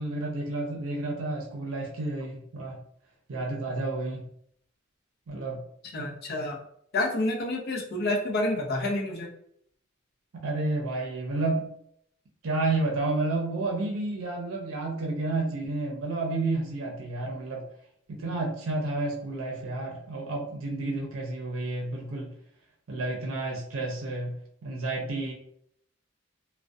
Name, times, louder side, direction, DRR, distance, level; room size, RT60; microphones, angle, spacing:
voice 1, 0.0-2.8 3.3-4.2 5.3-5.6 6.0-6.1 10.3-11.7 12.4-17.6 18.1-22.3 22.9-24.4 24.6-25.3, right 2 dB, 90° right, 0 dB, 0.5 m, -30 dB
voice 2, 5.9-6.6 6.9-9.3, left 2 dB, 50° left, 1 dB, 0.5 m, -28 dB
2.3 x 2.1 x 2.5 m, 0.68 s
head